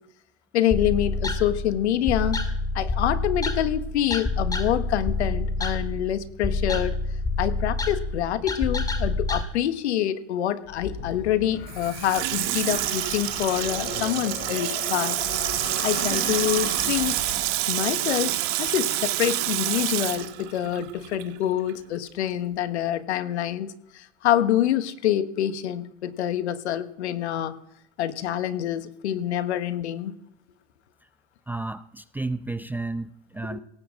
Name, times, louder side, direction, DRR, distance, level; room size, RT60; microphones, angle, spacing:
voice 1, 0.5-2.4 2.7-7.0 7.4-15.2 15.8-17.2 17.7-27.5 28.0-30.1 33.5-33.6, left 11 dB, 80° left, 13 dB, 1.3 m, -26 dB
sound 1, 0.7-9.4, left 3 dB, 10° left, 2.0 m, -28 dB
sound 2, 10.7-17.9, left 7 dB, 55° left, 3.3 m, -38 dB
Water tap faucet / Sink (filling or washing), 11.7-21.4 21.7-21.8, right 16 dB, 50° right, 1.5 m, -28 dB
voice 2, 31.5-33.6, right 2 dB, 5° right, 14 dB, 0.5 m, -32 dB
17.5 x 7.2 x 7.5 m, 0.78 s
hypercardioid pair, 105°, 34 cm